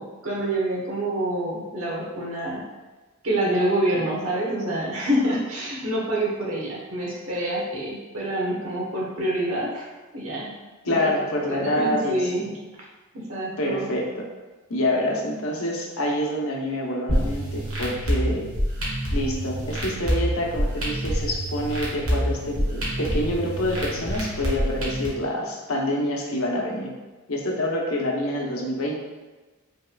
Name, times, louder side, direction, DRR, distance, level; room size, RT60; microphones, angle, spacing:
voice 1, 0.0-2.6 3.2-9.9 10.1-10.6 10.9-11.0 11.5-12.5 13.1-13.9, right 1 dB, 70° right, -3 dB, 1.2 m, -27 dB
voice 2, 10.8-12.4 13.6-14.2 14.7-18.5 19.1-26.9 27.3-29.0, left 1 dB, 80° left, -1 dB, 0.9 m, -27 dB
sound 1, 17.1-25.1, equal, 90° right, 1.3 m, -27 dB
5.4 x 3.5 x 2.3 m, 1.2 s
head